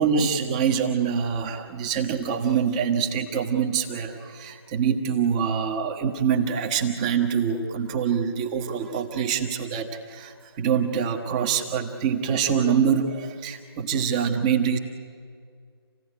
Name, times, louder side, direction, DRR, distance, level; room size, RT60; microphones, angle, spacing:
voice 1, 0.0-14.8, right 7 dB, 15° right, 5 dB, 1.3 m, -25 dB
28.0 x 16.5 x 10.0 m, 2.2 s
figure-of-eight pair, 150°, 13 cm